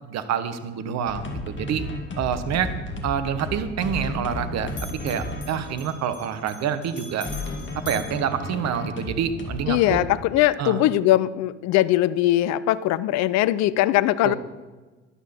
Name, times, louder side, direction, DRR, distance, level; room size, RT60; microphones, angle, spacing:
voice 1, 0.0-1.8 2.2-2.7 3.0-4.7 5.0-7.3 7.9-10.0 10.6-10.8 14.2-14.4, right 8 dB, 50° right, 11 dB, 1.3 m, -27 dB
sound 1, 1.1-10.0, left 2 dB, 35° left, 2.3 m, -34 dB
Bell, 3.1-4.4 4.7-9.2, left 2 dB, 75° left, 3.4 m, -44 dB
voice 2, 9.7-14.3, left 14 dB, 50° left, 18 dB, 0.6 m, -21 dB
12.5 x 11.5 x 4.4 m, 1.2 s
figure-of-eight pair, 60°, 34 cm